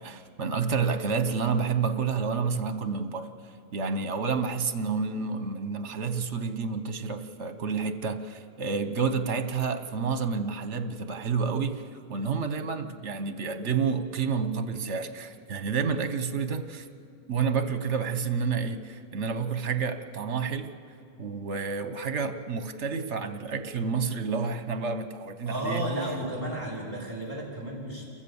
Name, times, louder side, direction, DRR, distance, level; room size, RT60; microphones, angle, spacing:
voice 1, 0.0-3.3 3.7-11.8 12.1-16.9 17.3-20.7 21.2-25.9, right 5 dB, 65° right, 10 dB, 1.4 m, -29 dB
voice 2, 25.4-28.1, right 1 dB, 15° right, -2 dB, 5.0 m, -33 dB
29.0 x 14.5 x 7.1 m, 2.6 s
omnidirectional pair, 1.3 m